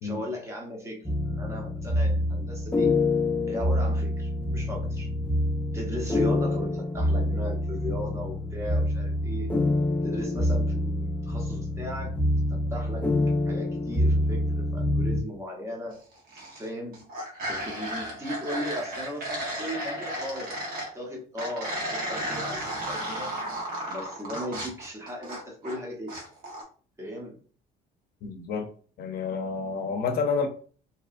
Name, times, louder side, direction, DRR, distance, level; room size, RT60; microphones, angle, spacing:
voice 1, 0.0-3.0 3.5-5.1 5.7-9.5 10.0-12.2 12.5-13.1 13.5-16.0 16.5-17.0 17.5-20.6 20.9-23.3 23.9-26.2 27.0-27.4, equal, 15° right, 0 dB, 0.9 m, -37 dB
sound 1, 1.1-15.2, left 1 dB, 10° left, 0.5 m, -26 dB
sound 2, 16.1-16.7 16.9-20.9 21.4-25.8 26.1-26.6, right 1 dB, 60° right, 1.1 m, -34 dB
voice 2, 28.2-28.7 29.0-30.5, left 5 dB, 65° left, 7 dB, 0.6 m, -29 dB
2.8 x 2.2 x 2.4 m, 0.42 s
cardioid pair, 110°, 17 cm